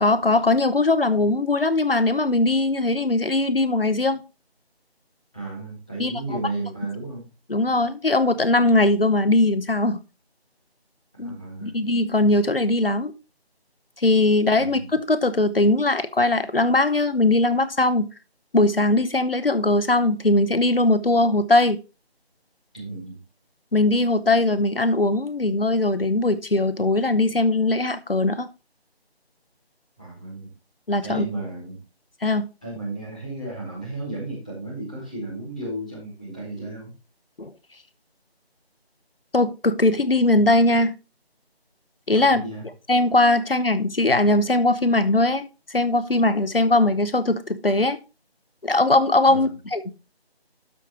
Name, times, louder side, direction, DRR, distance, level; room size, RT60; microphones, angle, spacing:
voice 1, 0.0-4.2 6.0-6.1 7.5-10.0 11.2-11.4 11.6-13.1 14.0-18.1 18.5-21.8 23.7-28.5 30.9-31.2 32.2-32.5 37.4-37.5 39.3-40.9 42.1-42.4 42.9-45.4 45.7-48.0 48.6-49.9, left 2 dB, 60° left, 1.0 m, -20 dB
voice 2, 5.3-7.2 11.2-11.8 14.6-14.9 22.7-23.2 30.0-30.5 31.0-31.8 32.6-36.9 42.1-42.6 49.3-49.5, right 2 dB, 5° right, 1.3 m, -34 dB
12.5 x 5.0 x 2.9 m
figure-of-eight pair, 170°, 32 cm